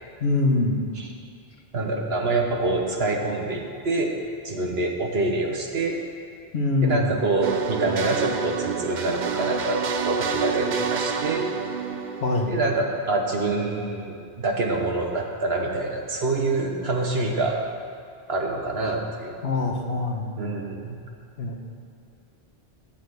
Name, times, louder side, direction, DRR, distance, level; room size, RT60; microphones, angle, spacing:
voice 1, 0.2-0.8 6.5-7.1 12.2-12.6 19.4-20.3 21.4-21.5, left 2 dB, 70° left, 2 dB, 1.5 m, -23 dB
voice 2, 1.7-4.1 4.4-6.0 6.8-11.5 12.5-17.6 18.3-19.3 20.4-21.0, right 2 dB, 65° right, 1 dB, 1.6 m, -26 dB
sound 1, 7.4-13.2, right 5 dB, 50° right, 0.7 m, -28 dB
9.3 x 9.2 x 7.9 m, 2.4 s
omnidirectional pair, 1.1 m